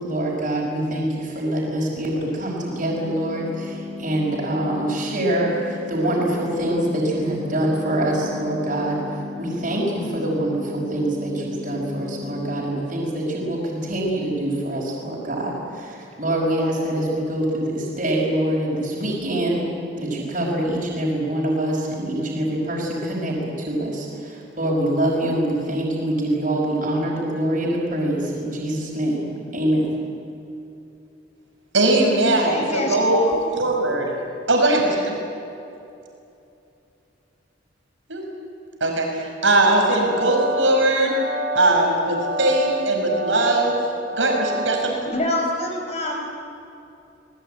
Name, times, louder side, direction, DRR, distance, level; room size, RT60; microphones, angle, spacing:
voice 1, 0.0-19.7 20.0-30.0, right 1 dB, 45° right, -3 dB, 5.4 m, -25 dB
sound 1, 2.6-12.6, left 4 dB, 10° left, 3.2 m, -36 dB
voice 2, 31.7-33.3 33.5-34.2 34.5-35.2 38.1-38.2 38.8-41.1 41.5-43.8 44.1-45.1, right 2 dB, 85° right, 1 dB, 5.7 m, -20 dB
voice 3, 32.5-33.3 45.1-46.3, left 1 dB, 35° left, 0 dB, 4.9 m, -25 dB
sound 2, 39.9-45.1, right 1 dB, 85° left, 5.6 m, -29 dB
26.5 x 20.5 x 9.0 m, 2.7 s
head